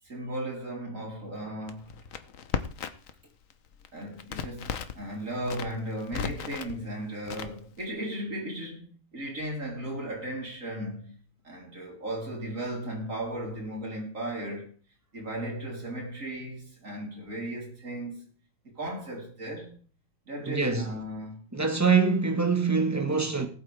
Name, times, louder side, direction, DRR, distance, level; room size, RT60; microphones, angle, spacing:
voice 1, 0.0-1.9 3.9-14.8 15.1-18.2 18.6-19.7 20.3-21.4, right 1 dB, 75° right, 4.3 m, -36 dB
Crackle, 1.7-3.2 3.4-5.0 5.4-6.7 7.3-7.9, left 7 dB, 75° left, 1.3 m, -35 dB
voice 2, 20.4-20.9 21.5-23.5, right 5 dB, 15° right, 1.5 m, -24 dB
19.5 x 8.5 x 3.4 m
omnidirectional pair, 1.4 m